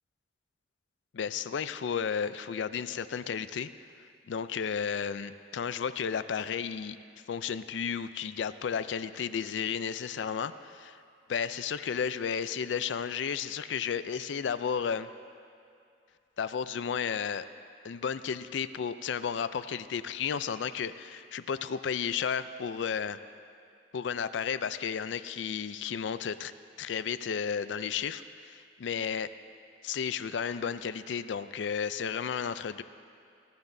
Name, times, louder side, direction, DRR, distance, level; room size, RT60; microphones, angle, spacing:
voice 1, 1.1-3.7 4.3-7.0 7.3-11.0 11.3-15.1 16.4-17.5 17.8-23.2 23.9-26.5 26.8-29.3 29.8-32.8, left 7 dB, 75° left, 13 dB, 0.4 m, -33 dB
21.5 x 13.0 x 2.7 m, 2.4 s
head